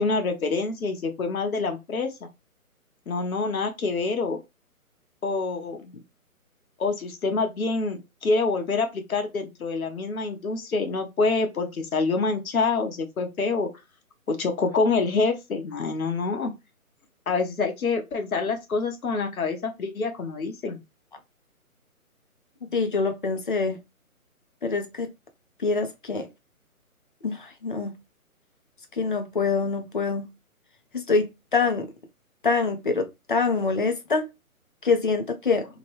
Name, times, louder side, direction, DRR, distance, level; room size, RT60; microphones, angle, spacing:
voice 1, 0.0-2.3 3.1-4.4 5.2-5.9 6.8-13.7 14.3-16.5 17.3-20.8, left 4 dB, 70° left, 1.0 m, -26 dB
voice 2, 22.7-23.8 24.6-25.1 25.6-26.3 27.2-28.0 28.9-30.3 30.9-31.9 32.4-34.2 34.8-35.7, left 4 dB, 35° left, 0.5 m, -25 dB
2.9 x 2.2 x 3.1 m
figure-of-eight pair, 150°, 44 cm